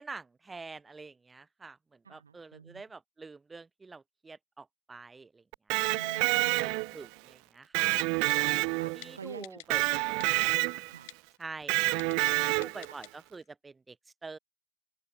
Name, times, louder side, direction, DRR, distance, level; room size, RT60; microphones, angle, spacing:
voice 1, 0.0-5.7 6.3-8.5 8.9-10.1 11.4-12.0 12.4-14.0 14.2-14.4, right 4 dB, 10° right, 5.9 m, -47 dB
voice 2, 2.0-2.8 5.9-6.9 8.2-9.6 9.9-10.5 10.8-11.1 12.2-13.0, right 6 dB, 70° right, 3.6 m, -48 dB
Electric guitar, 5.5-7.1 7.7-9.1 9.7-11.0 11.7-12.9, right 31 dB, 45° right, 1.0 m, -28 dB
Typing, 8.0-8.4 9.0-9.1 9.4-9.8 10.2-10.5 11.1-11.2 12.0-12.3 12.6-13.1 13.4-13.5, left 26 dB, 50° left, 3.8 m, -46 dB
open air
figure-of-eight pair, 90°, 0 cm